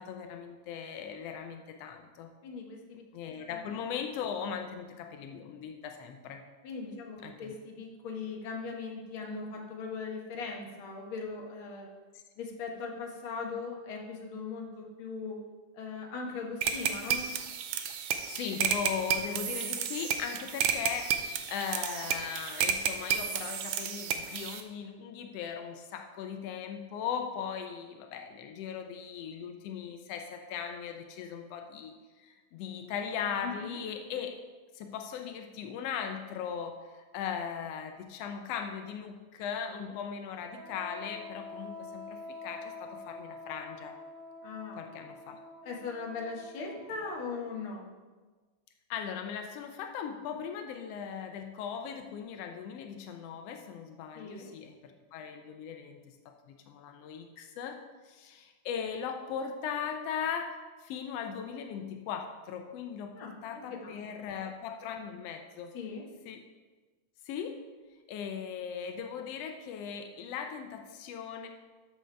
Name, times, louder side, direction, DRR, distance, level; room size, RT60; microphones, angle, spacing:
voice 1, 0.0-2.3 3.1-6.4 7.2-7.5 18.2-34.4 34.7-44.0 44.7-45.4 48.9-57.8 58.0-65.7 66.2-66.4 67.2-67.6 68.1-71.5, left 7 dB, 90° left, 5 dB, 1.4 m, -38 dB
voice 2, 2.4-3.0 3.5-3.6 6.6-11.9 12.4-15.4 15.7-17.3 33.4-33.8 39.7-39.9 44.4-44.8 45.6-47.9 54.1-54.5 63.2-64.3 65.7-66.0, left 4 dB, 55° left, 0 dB, 1.7 m, -39 dB
sound 1, 16.6-24.6, right 8 dB, 85° right, 1.3 m, -32 dB
Wind instrument woodwind instrument, 40.5-47.9, left 3 dB, 60° right, 1.8 m, -47 dB
12.5 x 6.5 x 3.3 m, 1.3 s
omnidirectional pair, 3.5 m